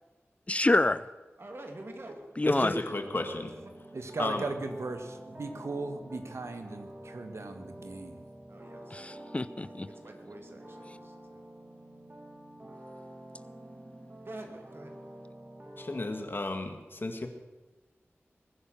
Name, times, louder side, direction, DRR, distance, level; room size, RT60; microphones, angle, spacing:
voice 1, 0.5-1.0 2.4-2.8 8.9-9.9, left 2 dB, 25° left, 15 dB, 0.4 m, -27 dB
voice 2, 1.4-2.4 3.6-3.7 8.5-9.2 9.6-11.4 14.2-15.0, right 1 dB, 55° right, 3 dB, 2.6 m, -47 dB
voice 3, 2.5-3.5 4.2-4.5 15.8-17.3, left 2 dB, 50° left, 5 dB, 1.9 m, -33 dB
sound 1, 2.9-16.4, right 1 dB, 40° right, 2.6 m, -48 dB
voice 4, 3.9-8.2, right 3 dB, 75° right, 7 dB, 1.5 m, -37 dB
20.5 x 9.8 x 6.7 m, 1.2 s
wide cardioid pair, 70°, 5 cm